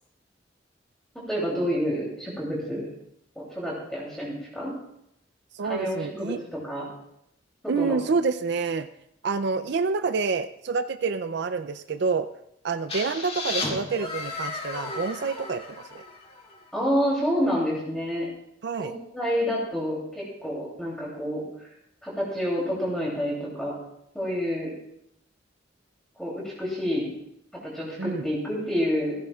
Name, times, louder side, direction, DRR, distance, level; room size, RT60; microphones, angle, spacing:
voice 1, 1.3-2.9 3.3-4.7 5.6-6.9 7.8-8.0 16.7-18.3 18.8-21.4 22.0-23.7 24.1-24.7 26.2-27.1 27.6-29.1, equal, 5° left, -5 dB, 3.0 m, -28 dB
voice 2, 5.5-6.4 7.7-8.9 9.2-12.3 12.6-16.0 18.6-18.9 28.0-28.3, right 4 dB, 65° right, 11 dB, 0.4 m, -28 dB
sound 1, 12.9-16.6, left 3 dB, 35° left, 2.3 m, -34 dB
15.0 x 15.0 x 2.4 m, 0.77 s
head